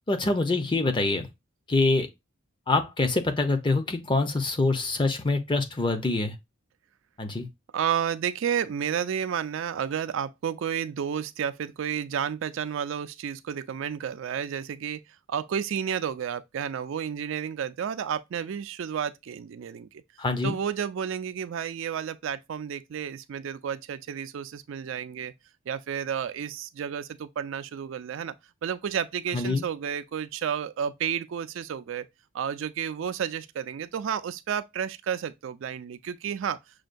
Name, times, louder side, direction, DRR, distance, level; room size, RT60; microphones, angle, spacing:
voice 1, 0.1-1.3 1.7-2.1 2.7-6.3 7.2-7.5 20.2-20.6 29.3-29.6, left 3 dB, 25° left, 0.6 m, -25 dB
voice 2, 7.7-15.0 15.3-20.0 20.4-25.3 25.7-28.3 28.6-32.1 32.3-36.6, right 8 dB, 65° right, 0.3 m, -31 dB
6.3 x 2.2 x 2.5 m
head